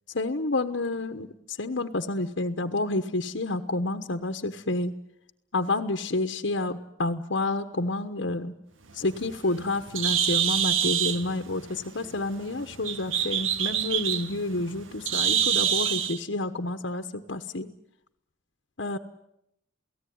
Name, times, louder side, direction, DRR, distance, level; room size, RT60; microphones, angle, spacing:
voice 1, 0.1-1.3 1.6-4.9 5.5-8.5 8.9-17.7 18.8-19.0, left 2 dB, 65° left, 8 dB, 1.2 m, -29 dB
Bird, 8.9-16.2, right 9 dB, 90° right, 1.5 m, -27 dB
28.5 x 18.0 x 9.5 m, 0.81 s
head